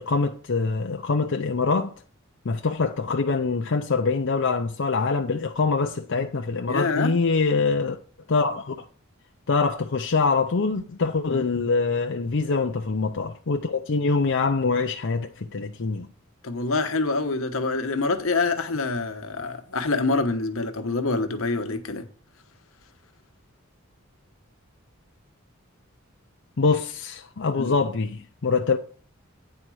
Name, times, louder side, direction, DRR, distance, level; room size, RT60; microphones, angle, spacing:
voice 1, 0.0-1.9 2.4-8.0 8.3-8.8 9.5-16.1 26.6-28.8, left 4 dB, 65° left, 0.6 m, -24 dB
voice 2, 6.7-7.1 11.3-11.4 16.4-22.1 27.6-27.7, left 3 dB, 85° left, 1.1 m, -26 dB
9.4 x 4.3 x 6.2 m
head